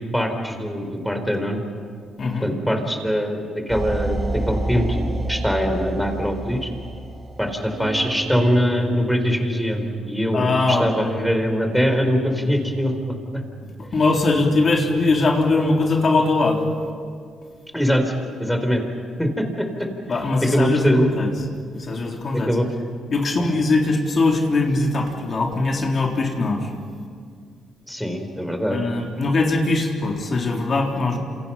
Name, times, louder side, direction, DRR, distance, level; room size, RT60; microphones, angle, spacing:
voice 1, 0.1-1.6 2.4-4.2 4.5-6.7 7.4-13.4 17.7-18.1 18.4-18.8 19.2-19.9 20.4-21.1 22.3-22.7 23.4-23.5 27.9-28.8, equal, ahead, 5 dB, 4.2 m, -22 dB
voice 2, 2.2-2.5 10.3-11.2 13.6-16.6 20.1-21.3 21.7-22.5 23.1-26.7 28.7-31.2, left 3 dB, 45° left, 1 dB, 3.7 m, -21 dB
sound 1, 3.7-8.5, right 1 dB, 30° right, 4.9 m, -28 dB
sound 2, 7.8-16.9, right 2 dB, 65° right, 1.9 m, -37 dB
28.5 x 27.5 x 5.7 m, 2.2 s
cardioid pair, 90°, 0 cm